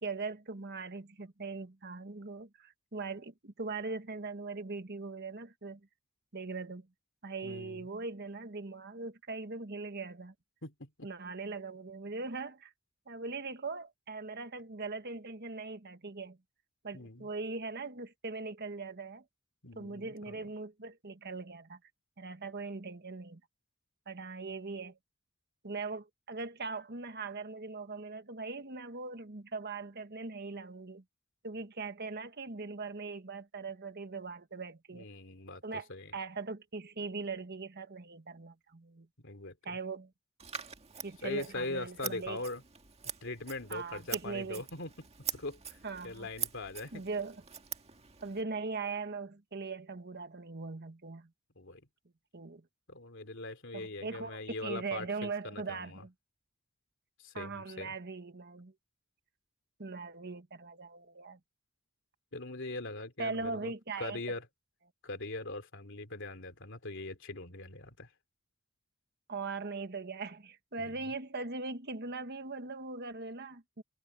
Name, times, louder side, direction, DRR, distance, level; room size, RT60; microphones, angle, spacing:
voice 1, 0.0-5.8 6.3-6.9 7.2-10.3 11.0-12.7 13.1-16.4 16.8-19.2 19.7-21.8 22.2-23.4 24.1-25.0 25.6-31.0 31.4-35.1 35.6-39.1 39.6-40.1 41.0-42.4 43.7-44.6 45.8-46.3 46.9-47.4 48.2-51.3 52.3-52.6 53.7-56.1 57.3-58.7 59.8-61.4 63.2-64.4 69.3-73.8, right 4 dB, 55° right, 1.5 m, -40 dB
voice 2, 7.4-7.9 10.6-11.1 16.9-17.3 19.6-20.5 34.9-36.1 39.2-39.8 41.2-42.6 43.2-45.8 46.0-47.0 51.6-51.9 52.9-56.0 57.2-58.0 62.3-63.7 64.0-64.5 65.0-68.1 70.8-71.0, left 2 dB, 65° left, 3.2 m, -41 dB
Scissors, 40.4-48.4, right 8 dB, 30° right, 1.8 m, -44 dB
head